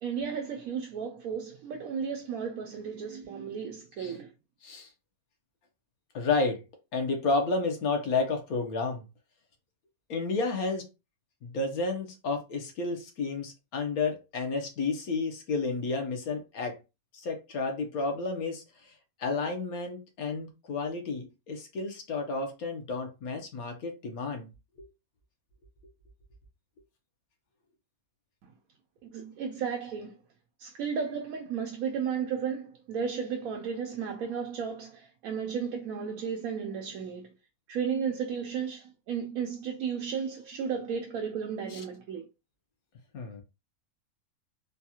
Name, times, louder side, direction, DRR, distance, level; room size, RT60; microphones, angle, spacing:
voice 1, 0.0-4.3 28.4-28.5 29.0-30.2 30.6-37.3 37.7-42.3, right 6 dB, 80° right, 1.0 m, -34 dB
voice 2, 6.1-6.6 6.9-9.0 10.1-10.8 11.4-16.8 17.1-18.6 19.2-24.5 24.8-24.9 41.7-41.8 43.1-43.4, left 3 dB, 85° left, 1.4 m, -31 dB
4.0 x 2.3 x 2.8 m
omnidirectional pair, 1.5 m